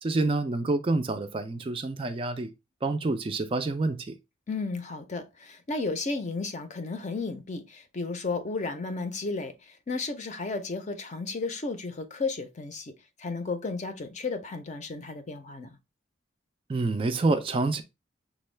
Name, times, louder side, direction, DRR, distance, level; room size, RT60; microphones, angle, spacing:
voice 1, 0.0-2.5 2.8-4.1 16.7-17.8, right 2 dB, 25° right, 0.3 m, -27 dB
voice 2, 4.5-12.9 13.2-15.8, left 3 dB, 35° left, 0.5 m, -33 dB
6.1 x 2.2 x 3.2 m
head